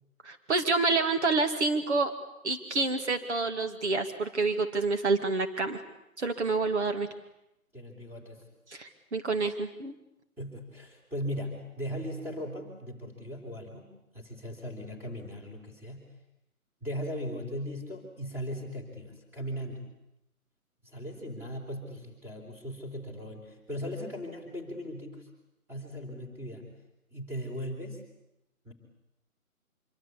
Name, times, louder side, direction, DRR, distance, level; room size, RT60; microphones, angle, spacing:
voice 1, 0.2-2.1 2.4-5.8 6.2-7.1 8.7-9.9, right 3 dB, 50° right, 6 dB, 2.3 m, -28 dB
voice 2, 7.7-8.4 10.4-16.0 16.8-19.8 20.8-25.3 25.7-26.7 27.1-28.0 28.6-28.7, equal, 5° right, 1 dB, 4.0 m, -38 dB
26.0 x 25.0 x 8.6 m, 0.86 s
figure-of-eight pair, 150°, 44 cm